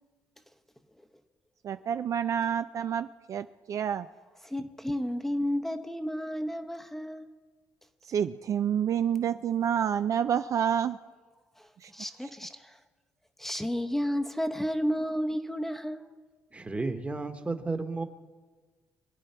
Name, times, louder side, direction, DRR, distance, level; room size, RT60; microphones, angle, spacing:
voice 1, 1.6-4.1 8.0-11.0 11.8-11.9, right 8 dB, 50° right, 0.4 m, -28 dB
voice 2, 4.4-7.3 11.6-12.8 13.4-16.1, equal, 5° left, 0.8 m, -32 dB
voice 3, 16.5-18.0, right 3 dB, 20° right, 1.2 m, -32 dB
23.5 x 10.0 x 4.4 m
cardioid pair, 105°, 7 cm